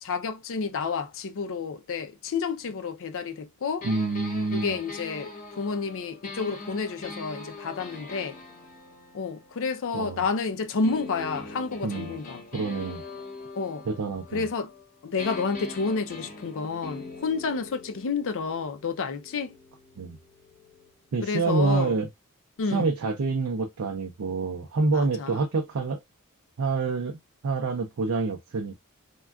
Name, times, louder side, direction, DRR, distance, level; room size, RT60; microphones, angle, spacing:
voice 1, 0.0-3.9 4.5-8.4 9.1-12.4 13.5-13.8 14.3-14.7 15.0-19.6 21.2-21.9 22.6-22.8 24.9-25.4, left 4 dB, 60° left, 0.5 m, -30 dB
sound 1, 3.8-10.3 10.8-14.9 15.2-20.9, left 3 dB, 35° left, 0.9 m, -42 dB
voice 2, 3.8-4.8 9.9-10.2 11.8-12.1 12.5-13.0 13.9-14.5 20.0-20.2 21.1-22.1 22.7-26.0 26.6-27.2 27.4-28.8, right 3 dB, 65° right, 0.5 m, -27 dB
3.5 x 2.3 x 2.2 m
head